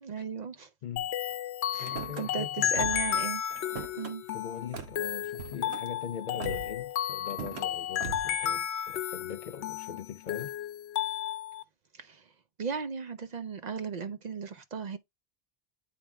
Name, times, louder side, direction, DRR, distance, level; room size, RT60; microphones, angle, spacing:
voice 1, 0.0-0.7 1.7-3.4 4.0-4.2 11.9-12.3 12.6-15.0, right 6 dB, 50° right, 0.6 m, -36 dB
voice 2, 0.8-1.1 1.8-2.9 4.3-10.5, left 8 dB, 60° left, 0.6 m, -41 dB
sound 1, 1.0-11.6, left 10 dB, 80° left, 0.9 m, -33 dB
Car / Slam, 1.8-2.3 2.7-3.2 3.5-4.1 4.7-5.0 5.4-5.9 6.4-6.8 7.3-7.7 8.0-8.4, right 5 dB, 75° right, 1.2 m, -40 dB
9.1 x 3.3 x 3.4 m
omnidirectional pair, 1.1 m